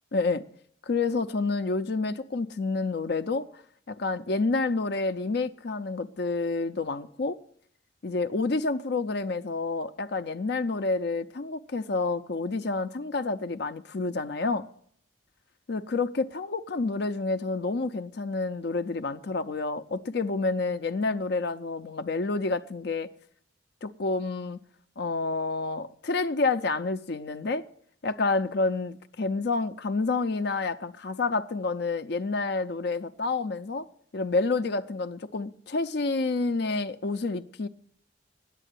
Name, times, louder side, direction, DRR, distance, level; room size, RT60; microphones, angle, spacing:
voice 1, 0.1-0.5 0.9-3.5 3.9-7.4 8.0-14.7 15.7-23.1 23.8-24.6 25.0-27.6 28.0-33.9 34.1-37.7, left 3 dB, 55° left, 0.5 m, -29 dB
9.9 x 8.4 x 9.4 m
head